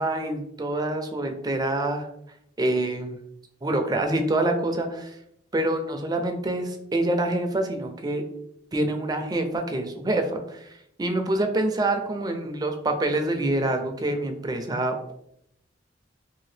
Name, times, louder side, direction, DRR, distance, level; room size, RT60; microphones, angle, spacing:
voice 1, 0.0-2.1 2.6-3.2 3.6-5.1 5.5-8.2 8.7-10.7 11.0-15.1, right 1 dB, 20° right, 5 dB, 0.4 m, -26 dB
2.8 x 2.7 x 3.2 m, 0.74 s
head